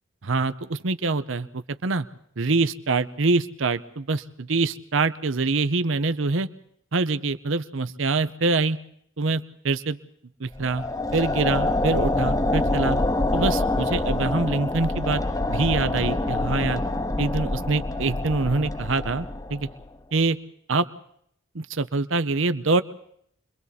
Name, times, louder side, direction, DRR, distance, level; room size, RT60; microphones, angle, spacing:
voice 1, 0.2-2.1 2.4-6.5 6.9-8.8 9.2-10.0 10.4-10.8 11.1-13.0 13.3-15.2 15.5-16.8 17.2-19.7 20.1-20.4 20.7-20.9 21.5-22.8, right 3 dB, 70° right, 13 dB, 0.8 m, -25 dB
sound 1, 10.5-19.8, left 2 dB, 15° left, 0.8 m, -26 dB
29.5 x 23.0 x 4.2 m, 0.69 s
head